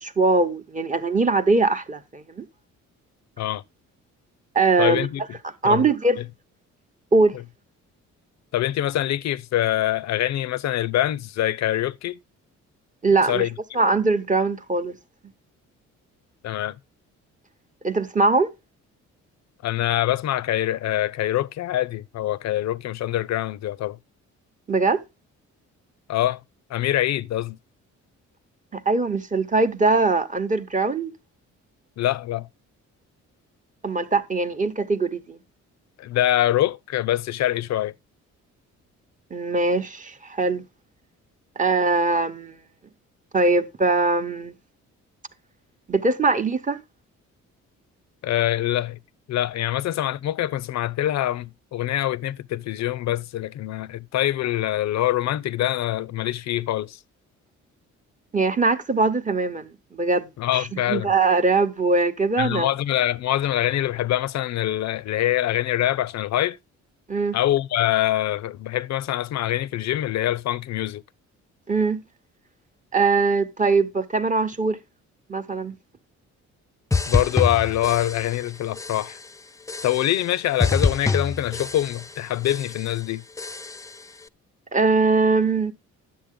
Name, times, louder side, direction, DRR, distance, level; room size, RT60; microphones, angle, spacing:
voice 1, 0.0-2.5 4.5-5.1 5.6-6.2 7.1-7.4 13.0-13.5 13.7-15.0 17.8-18.5 24.7-25.0 28.7-31.1 33.8-35.4 39.3-40.6 41.6-42.6 43.3-44.5 45.9-46.8 58.3-62.7 67.1-67.4 71.7-72.0 72.9-74.8 75.3-75.8 84.7-85.7, right 3 dB, 25° right, 0.9 m, -21 dB
voice 2, 4.8-5.2 5.6-5.9 8.5-12.2 13.3-13.5 16.4-16.7 19.6-24.0 26.1-26.4 26.7-27.6 32.0-32.5 36.0-37.9 48.2-49.0 49.3-57.0 60.4-61.1 62.4-66.6 67.3-71.0 77.1-79.2 79.8-83.2, left 13 dB, 60° left, 0.5 m, -24 dB
sound 1, 76.9-78.5 78.8-79.3 79.7-80.3 80.6-82.2 82.4-83.0 83.4-84.0, left 4 dB, 10° left, 0.4 m, -26 dB
10.5 x 7.5 x 3.7 m
cardioid pair, 90°, 30 cm